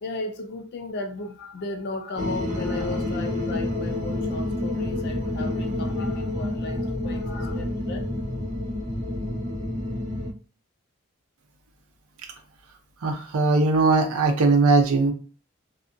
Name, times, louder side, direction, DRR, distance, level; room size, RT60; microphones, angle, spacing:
voice 1, 0.0-8.0, left 2 dB, 50° left, 0.3 m, -35 dB
sound 1, 2.2-10.3, left 1 dB, 35° right, 0.8 m, -28 dB
voice 2, 13.0-15.1, right 3 dB, 80° right, 0.5 m, -20 dB
2.7 x 2.4 x 2.5 m
head